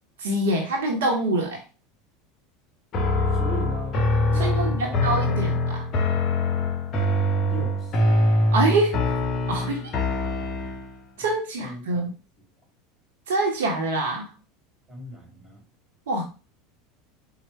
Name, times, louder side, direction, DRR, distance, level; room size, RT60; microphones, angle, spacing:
voice 1, 0.2-1.6 4.4-5.5 8.5-9.0 9.5-9.9 11.2-12.1 13.3-14.3 16.1-16.2, right 2 dB, 65° right, 1 dB, 0.8 m, -25 dB
sound 1, 2.9-11.0, left 2 dB, 40° left, 0.7 m, -23 dB
voice 2, 3.3-4.0 4.3-5.5 7.4-8.3 11.2-11.3 11.6-12.1 14.9-15.6, left 1 dB, 15° right, -1 dB, 2.1 m, -38 dB
4.4 x 2.1 x 4.2 m, 0.34 s
figure-of-eight pair, 80°, 0 cm